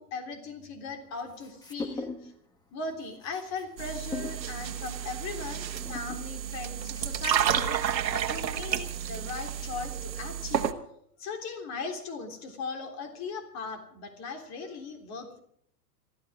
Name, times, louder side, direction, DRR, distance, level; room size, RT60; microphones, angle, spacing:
voice 1, 0.0-2.3 2.7-7.8 8.1-10.8 11.2-15.4, left 4 dB, 30° left, 4 dB, 3.5 m, -38 dB
sound 1, 1.2-2.4 2.7-10.0, left 3 dB, 10° left, 1.3 m, -43 dB
sound 2, 3.8-10.7, right 9 dB, 90° right, 1.5 m, -31 dB
28.0 x 13.5 x 3.6 m, 0.66 s
hypercardioid pair, 130°, 49 cm